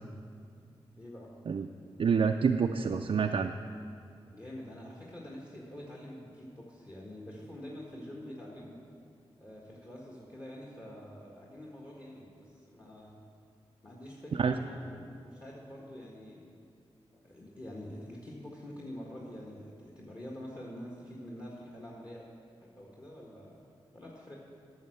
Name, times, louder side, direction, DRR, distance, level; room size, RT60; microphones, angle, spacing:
voice 1, 0.9-1.3 4.3-8.8 9.4-13.2 13.8-16.5 17.1-22.3 22.6-23.6 23.9-24.4, left 1 dB, 35° left, -4 dB, 1.6 m, -46 dB
voice 2, 2.0-3.6 14.3-14.6, right 6 dB, 55° right, 5 dB, 0.4 m, -27 dB
9.1 x 6.5 x 6.5 m, 2.4 s
cardioid pair, 40°, 11 cm